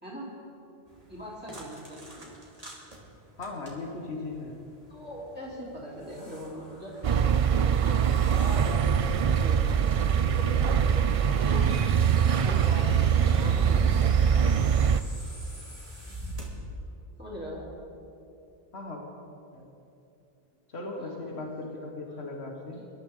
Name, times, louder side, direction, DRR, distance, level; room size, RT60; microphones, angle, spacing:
voice 1, 0.0-0.3 1.1-2.4 4.9-11.8 12.2-14.4 17.2-17.6 21.0-21.3 22.7-22.8, equal, 10° right, -7 dB, 3.5 m, -41 dB
sound 1, 0.9-16.5, right 1 dB, 35° right, 2.7 m, -46 dB
voice 2, 3.4-4.6 18.7-19.0 19.5-19.7 20.7-22.8, left 2 dB, 85° left, 0 dB, 1.9 m, -37 dB
sound 2, 5.0-16.3, left 1 dB, 65° left, 3.3 m, -52 dB
sound 3, 7.0-15.0, right 8 dB, 55° right, 0.4 m, -23 dB
25.5 x 12.5 x 3.9 m, 2.7 s
omnidirectional pair, 1.0 m